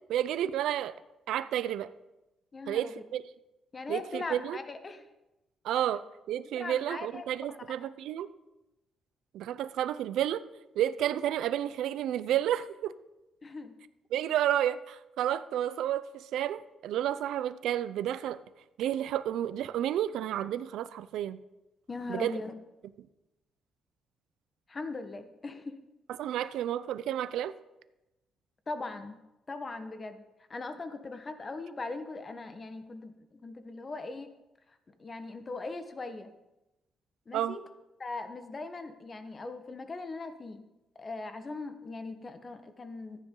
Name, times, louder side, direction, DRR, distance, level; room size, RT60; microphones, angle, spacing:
voice 1, 0.1-0.9 1.3-1.9 2.7-3.2 3.9-4.6 5.6-6.0 6.3-8.3 9.3-10.4 10.8-12.9 14.1-18.4 18.8-21.4 22.1-22.3 26.2-27.5 37.3-37.6, right 11 dB, 80° right, 14 dB, 0.5 m, -31 dB
voice 2, 2.5-3.0 3.7-5.1 6.4-7.9 13.4-13.7 21.9-22.5 24.7-25.8 28.7-29.2 29.5-30.2 30.5-34.3 35.0-36.3 37.3-37.6 38.0-40.6 41.0-43.2, left 3 dB, 30° left, 8 dB, 1.4 m, -40 dB
14.5 x 10.0 x 3.9 m, 0.96 s
cardioid pair, 90°, 0 cm